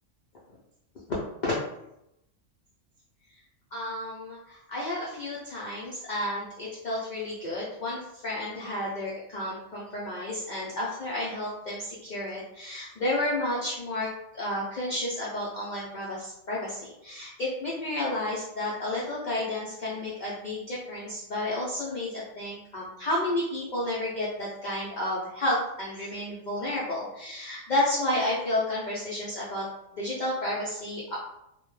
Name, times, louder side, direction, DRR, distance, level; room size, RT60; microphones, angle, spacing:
voice 1, 1.1-1.5 3.7-29.6 30.0-31.2, left 1 dB, 55° left, -6 dB, 0.5 m, -31 dB
2.1 x 2.1 x 3.0 m, 0.83 s
omnidirectional pair, 1.3 m